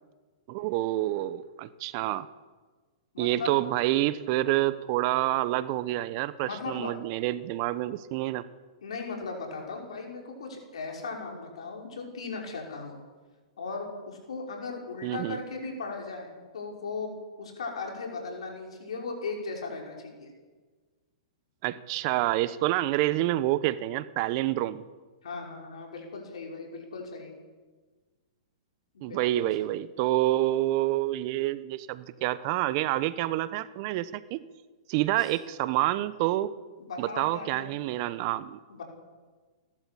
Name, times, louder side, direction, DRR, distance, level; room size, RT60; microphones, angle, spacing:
voice 1, 0.5-2.3 3.2-8.5 15.0-15.4 21.6-24.8 29.0-34.4 34.9-36.5 37.0-38.6, right 15 dB, 45° right, 15 dB, 1.0 m, -28 dB
voice 2, 3.1-3.6 6.4-6.9 8.8-13.0 13.6-17.1 17.4-20.3 25.2-27.3 28.9-29.8 35.2-35.3 36.8-37.7 38.7-38.8, left 4 dB, 75° left, 1 dB, 5.7 m, -37 dB
30.0 x 12.0 x 8.6 m, 1.4 s
hypercardioid pair, 120°, 3 cm